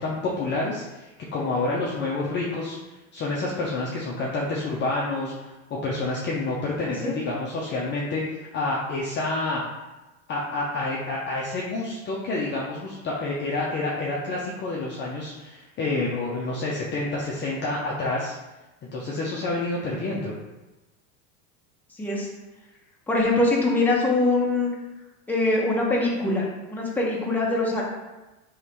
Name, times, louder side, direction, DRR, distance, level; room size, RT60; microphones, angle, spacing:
voice 1, 0.0-2.8 3.1-9.6 10.3-18.3 18.9-20.3, left 2 dB, 25° left, -4 dB, 0.6 m, -28 dB
voice 2, 23.1-24.7 25.3-27.8, left 2 dB, 5° left, -4 dB, 0.9 m, -23 dB
3.5 x 3.1 x 4.4 m, 1.1 s
supercardioid pair, 125°, 42 cm